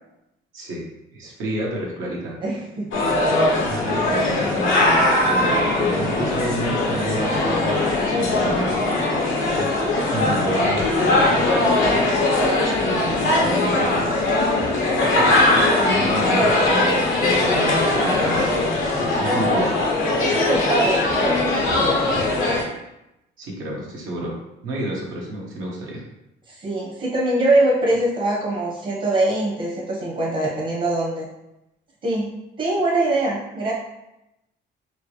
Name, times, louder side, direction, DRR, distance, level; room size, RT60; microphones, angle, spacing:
voice 1, 0.5-0.9 1.1-2.4 3.6-9.2 9.6-9.7 10.1-12.0 12.7-14.2 15.5-19.7 23.4-24.4 24.6-26.0, right 1 dB, 85° right, -4 dB, 1.1 m, -30 dB
voice 2, 2.4-2.9 19.2-19.7 20.2-22.1 26.5-31.3 32.0-32.3 32.6-33.7, right 2 dB, 45° right, -5 dB, 1.0 m, -23 dB
sound 1, 2.9-22.6, left 2 dB, 90° left, 0.8 m, -20 dB
4.4 x 2.0 x 3.1 m, 0.89 s
cardioid pair, 90°, 20 cm